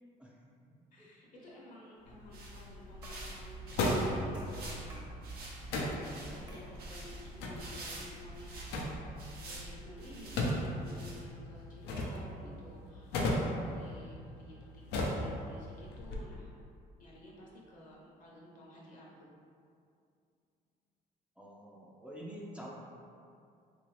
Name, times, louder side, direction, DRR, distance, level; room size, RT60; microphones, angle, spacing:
voice 1, 0.9-5.0 6.1-9.0 9.5-16.5 17.0-19.3, left 1 dB, 50° left, -4 dB, 0.7 m, -53 dB
sound 1, 2.0-16.1, left 1 dB, 90° left, 0.5 m, -38 dB
sound 2, 2.1-11.6, right 2 dB, 60° right, 0.8 m, -47 dB
sound 3, 3.0-3.3 3.8-4.1 4.3-5.2 5.8-6.0 6.5-6.7, equal, 25° right, 0.8 m, -55 dB
voice 2, 6.3-6.9 12.4-12.7 21.4-22.7, equal, 5° right, -5 dB, 0.4 m, -49 dB
2.9 x 2.6 x 3.0 m, 2.4 s
cardioid pair, 110°, 17 cm